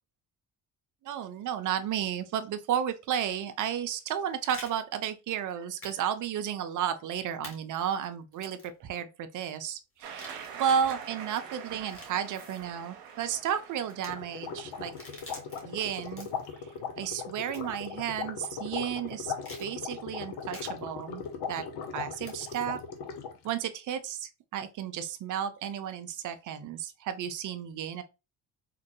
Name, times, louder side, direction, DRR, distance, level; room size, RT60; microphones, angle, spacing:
voice 1, 1.0-14.9 15.6-16.3 17.0-19.3 19.6-21.2 21.5-21.6 21.9-22.8 23.4-28.0, right 9 dB, 45° right, 0.5 m, -33 dB
sound 1, 3.9-4.7 5.8-6.0 6.2-6.3 7.4-7.6 8.3-8.7 10.0-10.8 11.7-12.7 13.8-14.1 14.8-15.6 16.0-16.5 17.5-17.8 18.4-18.5 19.4-19.7 20.5-20.7 22.2-22.6, left 1 dB, 30° left, 1.7 m, -48 dB
sound 2, 10.0-16.6, right 7 dB, 80° right, 0.7 m, -46 dB
sound 3, 14.1-23.5, left 6 dB, 60° left, 0.7 m, -39 dB
3.6 x 2.1 x 2.8 m
hypercardioid pair, 50°, 46 cm